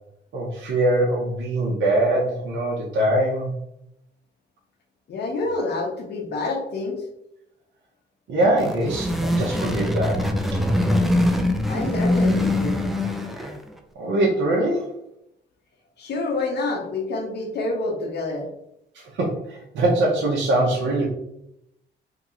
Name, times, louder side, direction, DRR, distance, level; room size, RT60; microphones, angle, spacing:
voice 1, 0.3-3.5 8.3-10.6 13.4-13.5 13.9-14.9 18.9-21.1, right 1 dB, 65° right, -4 dB, 1.0 m, -23 dB
voice 2, 5.1-7.0 11.7-12.8 16.0-18.5, left 3 dB, 55° left, 1 dB, 1.0 m, -27 dB
sound 1, 8.4-13.7, left 1 dB, ahead, 0.4 m, -23 dB
2.9 x 2.9 x 3.8 m, 0.80 s
cardioid pair, 90°, 20 cm